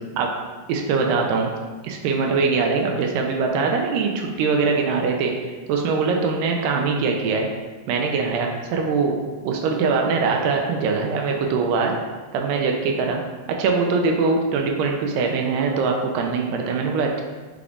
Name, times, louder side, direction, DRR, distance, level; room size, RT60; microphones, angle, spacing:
voice 1, 0.7-1.5 1.8-5.3 5.7-7.5 7.9-9.2 9.4-12.0 12.3-13.2 13.6-17.2, right 4 dB, 80° right, 1 dB, 2.1 m, -22 dB
5.8 x 2.5 x 3.4 m, 1.3 s
omnidirectional pair, 4.0 m